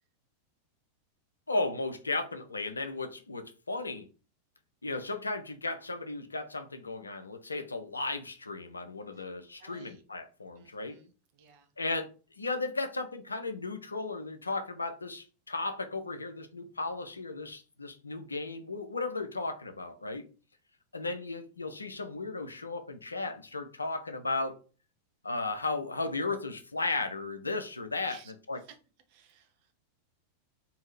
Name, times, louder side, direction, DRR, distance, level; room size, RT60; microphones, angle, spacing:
voice 1, 1.5-4.1 4.8-11.0 11.8-12.1 12.4-20.2 20.9-24.6 25.2-28.2 28.5-28.6, left 3 dB, 80° left, 0.4 m, -35 dB
voice 2, 9.6-10.0 10.5-11.7 28.0-28.8 29.1-29.7, right 7 dB, 45° right, 0.6 m, -57 dB
2.6 x 2.3 x 3.2 m
figure-of-eight pair, 90°, 0 cm